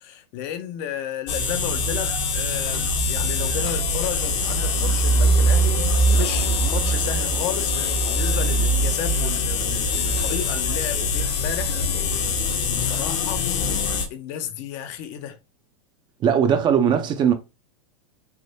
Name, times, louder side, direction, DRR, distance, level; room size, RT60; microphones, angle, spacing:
voice 1, 0.0-11.8 12.6-13.6 14.1-15.4, left 10 dB, 45° left, 0.6 m, -33 dB
sound 1, 1.3-14.1, left 1 dB, 65° left, 1.0 m, -22 dB
sound 2, 1.4-11.0, right 5 dB, 50° right, 1.0 m, -40 dB
voice 2, 16.2-17.3, right 8 dB, 30° right, 0.5 m, -19 dB
3.4 x 2.7 x 2.7 m
hypercardioid pair, 125°, 16 cm